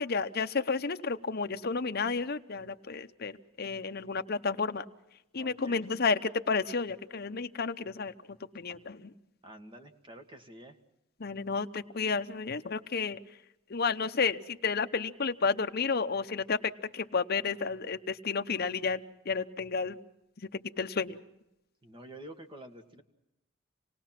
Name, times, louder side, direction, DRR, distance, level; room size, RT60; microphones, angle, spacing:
voice 1, 0.0-4.8 5.3-8.1 8.5-9.1 11.2-13.2 13.7-20.0 20.4-21.2, left 4 dB, 50° left, 8 dB, 0.8 m, -31 dB
voice 2, 5.4-5.8 9.4-10.8 21.8-23.0, right 1 dB, 25° right, 5 dB, 1.7 m, -49 dB
27.5 x 18.5 x 6.0 m, 0.88 s
head